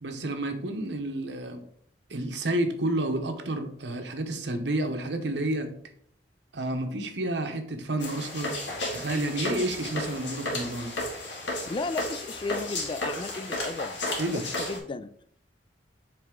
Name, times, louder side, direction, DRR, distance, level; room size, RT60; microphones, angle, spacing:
voice 1, 0.0-1.6 2.1-5.7 6.5-8.6 8.9-11.0 14.2-14.4, right 1 dB, 70° right, 6 dB, 0.9 m, -30 dB
sound 1, 8.0-14.8, left 1 dB, 85° left, 1.8 m, -33 dB
voice 2, 11.7-14.0 14.3-15.1, left 3 dB, 30° left, 13 dB, 0.3 m, -34 dB
7.8 x 3.3 x 3.7 m, 0.64 s
head